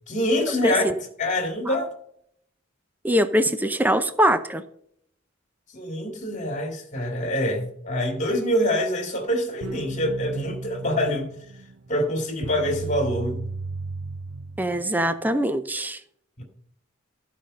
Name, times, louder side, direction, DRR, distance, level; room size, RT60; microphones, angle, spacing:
voice 1, 0.1-0.8 1.2-1.9 5.7-11.3 11.9-13.4 16.4-16.5, left 1 dB, 35° left, 2.3 m, -25 dB
voice 2, 3.0-4.6 14.6-16.0, equal, 10° right, 0.6 m, -22 dB
sound 1, 9.6-15.2, right 3 dB, 70° right, 0.7 m, -35 dB
14.0 x 5.1 x 6.6 m
head